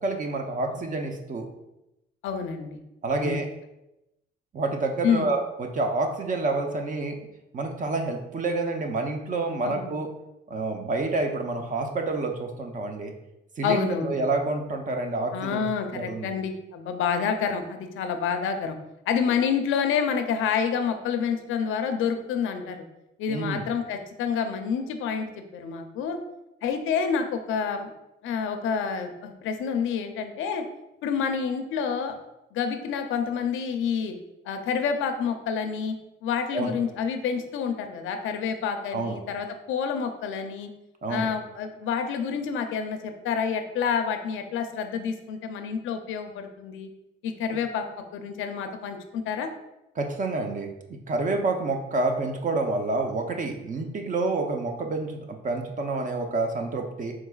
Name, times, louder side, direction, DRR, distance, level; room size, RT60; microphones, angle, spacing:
voice 1, 0.0-1.5 3.0-3.5 4.5-7.2 7.5-10.1 10.5-13.1 13.6-15.6 15.9-16.3 23.3-23.6 36.5-36.7 38.9-39.2 41.0-41.3 50.0-50.7 51.1-57.1, right 3 dB, 40° right, 3 dB, 0.7 m, -28 dB
voice 2, 2.2-2.8 3.2-3.4 5.0-5.3 9.6-9.9 13.6-14.2 15.3-18.8 19.1-22.8 23.2-26.2 26.6-27.9 28.2-30.6 31.0-32.2 32.5-34.2 34.5-36.0 36.2-40.7 41.1-46.9 47.2-47.8 48.1-49.5, left 6 dB, 85° left, 6 dB, 0.5 m, -28 dB
4.6 x 3.7 x 2.3 m, 0.90 s
cardioid pair, 90°, 20 cm